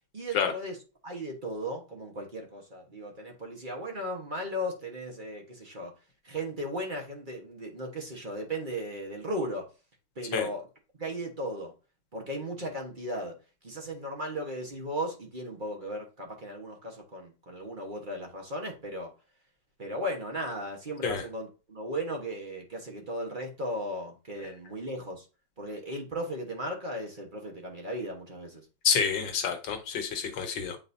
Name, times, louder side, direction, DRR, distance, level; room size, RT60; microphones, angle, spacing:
voice 1, 0.1-0.8 1.0-5.9 6.2-9.7 10.1-10.7 11.0-11.7 12.1-13.3 13.6-19.1 19.8-25.3 25.6-28.6, equal, 30° right, 1.3 m, -36 dB
voice 2, 28.8-30.8, left 7 dB, 85° left, 1.7 m, -28 dB
8.6 x 4.0 x 2.7 m
omnidirectional pair, 2.0 m